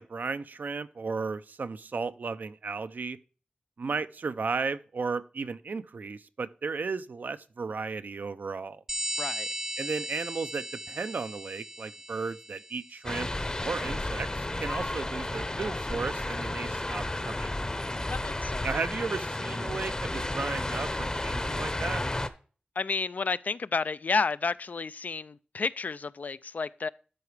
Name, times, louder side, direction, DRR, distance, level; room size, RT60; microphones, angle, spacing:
voice 1, 0.0-3.2 3.8-8.8 9.8-13.3 13.6-17.5 18.6-22.0, right 4 dB, 70° right, 0.5 m, -34 dB
sound 1, 8.9-13.2, right 1 dB, 15° right, 0.5 m, -37 dB
voice 2, 9.2-9.5 18.1-18.7 22.8-26.9, left 4 dB, 60° left, 0.3 m, -31 dB
sound 2, 13.0-22.3, left 1 dB, 25° left, 0.7 m, -32 dB
12.5 x 4.8 x 3.3 m
wide cardioid pair, 75°, 3 cm